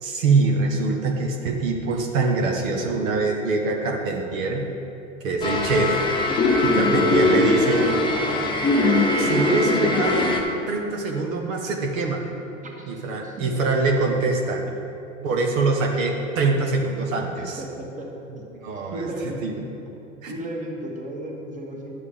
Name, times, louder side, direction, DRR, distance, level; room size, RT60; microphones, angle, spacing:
voice 1, 0.0-4.6 5.2-6.0 6.6-7.9 9.2-10.2 10.7-12.3 12.9-14.6 15.2-17.6 18.5-19.1 19.4-19.5 20.2-20.3, right 3 dB, 70° right, 1 dB, 1.2 m, -24 dB
sound 1, 5.4-10.4, left 2 dB, 10° left, 1.0 m, -21 dB
voice 2, 12.6-13.5 17.4-18.1 18.4-18.5 18.9-19.6 20.2-22.0, right 1 dB, 20° right, -1 dB, 1.5 m, -34 dB
10.5 x 6.5 x 3.7 m, 2.7 s
hypercardioid pair, 105°, 41 cm